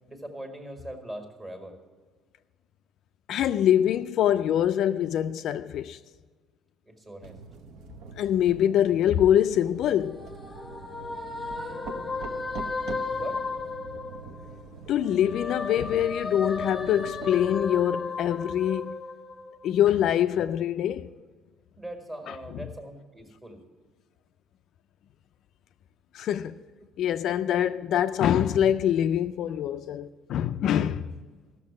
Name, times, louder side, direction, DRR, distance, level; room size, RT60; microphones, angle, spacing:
voice 1, 0.1-1.8 6.8-7.4 11.4-12.0 13.1-13.4 21.8-23.6, right 1 dB, 15° right, 1.7 m, -41 dB
voice 2, 3.3-6.0 8.2-10.3 14.9-19.0 19.6-21.1 22.3-22.4 26.1-26.5 27.0-31.1, left 10 dB, 55° left, 0.3 m, -24 dB
sound 1, 7.2-17.7, right 4 dB, 75° right, 1.0 m, -44 dB
sound 2, 9.6-14.6 15.0-19.8, left 4 dB, 15° left, 0.8 m, -35 dB
14.5 x 6.6 x 8.5 m
cardioid pair, 170°, 0 cm